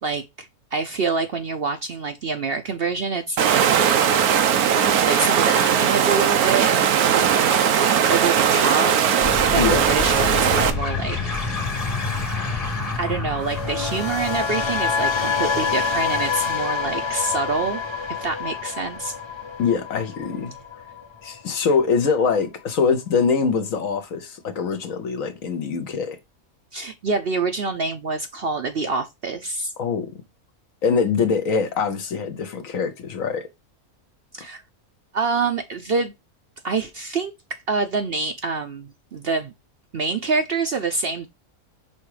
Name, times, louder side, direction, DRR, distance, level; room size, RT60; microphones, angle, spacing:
voice 1, 0.0-3.8 5.0-6.7 7.0-7.7 8.1-8.9 9.5-11.2 13.0-17.8 18.2-19.1 26.7-29.7 34.3-34.6 35.1-36.1 36.6-39.5 39.9-41.3, right 4 dB, 55° right, 0.7 m, -26 dB
Water, 3.4-10.7, right 8 dB, 90° right, 1.2 m, -19 dB
sound 1, 9.2-20.3, left 4 dB, 25° left, 1.2 m, -30 dB
voice 2, 9.5-9.9 19.6-20.5 21.2-26.2 29.8-30.1 30.8-33.5, left 5 dB, 65° left, 1.3 m, -23 dB
sound 2, 13.4-21.5 21.8-22.1, left 5 dB, 50° left, 0.3 m, -27 dB
5.4 x 3.6 x 4.9 m
omnidirectional pair, 1.5 m